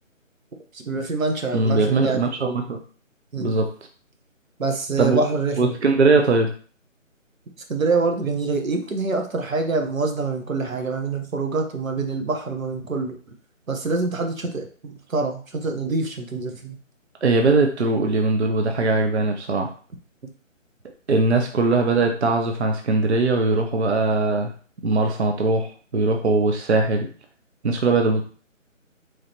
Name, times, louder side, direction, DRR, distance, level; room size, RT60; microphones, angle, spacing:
voice 1, 0.7-2.6 3.3-3.6 4.6-5.8 7.7-13.2 13.7-16.8, right 3 dB, 90° right, 3 dB, 1.1 m, -25 dB
voice 2, 1.5-2.8 3.4-3.7 5.0-5.2 5.6-6.5 17.2-19.7 21.1-24.5 24.8-27.1 27.6-28.2, right 3 dB, 55° right, 3 dB, 0.6 m, -20 dB
3.9 x 3.2 x 2.9 m, 0.41 s
figure-of-eight pair, 170°, 39 cm